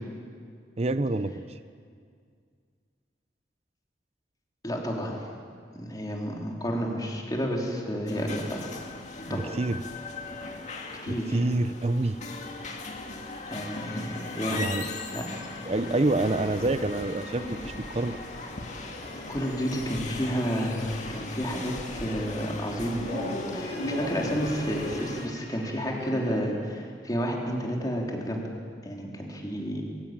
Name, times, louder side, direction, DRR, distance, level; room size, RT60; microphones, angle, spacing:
voice 1, 0.8-1.6 9.3-9.8 11.1-12.2 14.5-14.9 15.7-18.2, right 2 dB, 35° right, 12 dB, 0.6 m, -27 dB
voice 2, 4.6-5.3 5.7-8.7 9.3-9.5 11.0-11.4 13.5-14.7 15.1-15.3 15.6-15.7 19.3-23.1 23.5-28.4 28.8-29.8, equal, 20° left, -1 dB, 3.4 m, -31 dB
sound 1, 8.1-25.3, left 3 dB, 40° left, 2.1 m, -39 dB
sound 2, 13.5-26.4, left 1 dB, 85° left, 7.4 m, -40 dB
22.0 x 17.0 x 8.9 m, 2.1 s
head